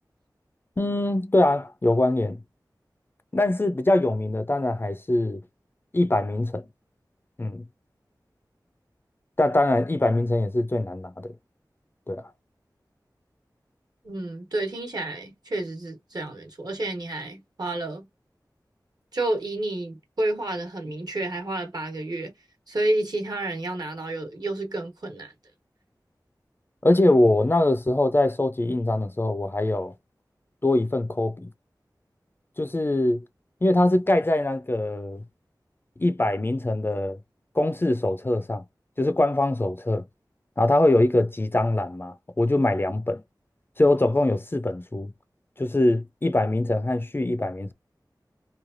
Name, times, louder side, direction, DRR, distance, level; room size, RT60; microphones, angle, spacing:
voice 1, 0.8-2.4 3.3-5.4 5.9-6.7 7.4-7.6 9.4-11.3 12.1-12.2 26.8-29.9 30.6-31.5 32.6-33.2 33.6-35.2 36.0-37.2 37.6-38.6 39.0-40.0 40.6-43.2 43.8-45.1 45.6-47.7, left 1 dB, 30° left, 0.4 m, -23 dB
voice 2, 14.0-18.1 19.1-22.3 22.7-25.3, right 2 dB, 65° right, 1.1 m, -30 dB
3.1 x 2.2 x 2.5 m
wide cardioid pair, 50°, 7 cm